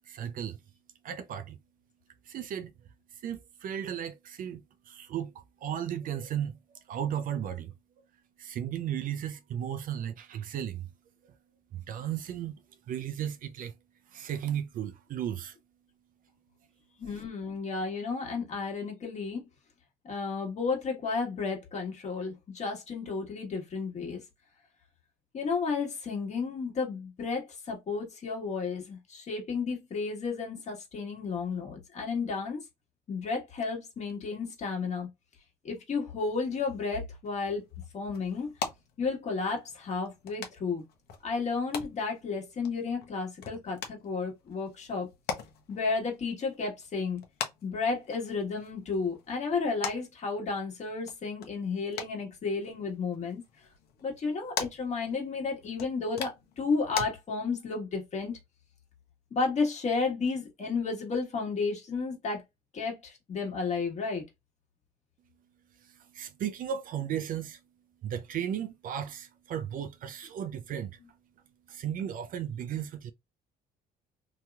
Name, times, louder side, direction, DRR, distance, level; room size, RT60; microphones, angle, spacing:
voice 1, 0.1-0.6 1.0-1.6 2.2-2.7 3.1-6.6 6.9-7.7 8.4-10.9 11.7-13.7 14.1-15.6 65.8-67.6 68.0-71.0 71.7-73.1, right 9 dB, 55° right, 0.4 m, -35 dB
voice 2, 17.0-19.4 20.1-24.2 25.3-32.6 33.1-35.1 35.6-37.6 37.9-38.5 39.0-40.8 41.2-45.1 45.7-47.2 47.6-53.4 54.0-56.3 56.6-58.3 59.3-62.4 62.7-64.2, left 4 dB, 45° left, 1.4 m, -32 dB
sound 1, 37.2-57.1, left 7 dB, 70° left, 0.8 m, -43 dB
2.9 x 2.8 x 2.3 m
cardioid pair, 110°, 17 cm